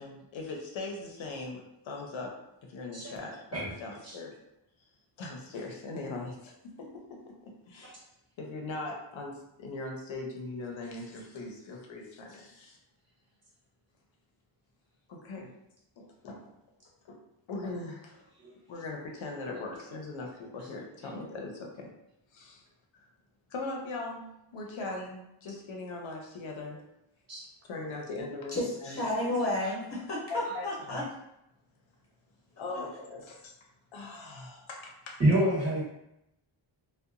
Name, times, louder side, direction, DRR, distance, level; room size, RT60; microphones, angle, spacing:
voice 1, 0.0-2.3 2.7-4.3 5.2-6.5 6.8-8.0 8.4-12.8 15.1-15.5 16.0-16.5 17.0-17.2 17.5-18.2 18.7-21.9 22.3-22.6 23.5-26.8 27.7-29.0 30.3-31.0 32.6-33.5 33.9-35.2, left 2 dB, 75° left, 0 dB, 0.6 m, -40 dB
voice 2, 28.5-31.0, left 1 dB, 30° left, -4 dB, 0.8 m, -31 dB
voice 3, 35.2-35.8, right 1 dB, 35° right, -6 dB, 0.8 m, -27 dB
2.7 x 2.2 x 2.4 m, 0.83 s
wide cardioid pair, 180°, 47 cm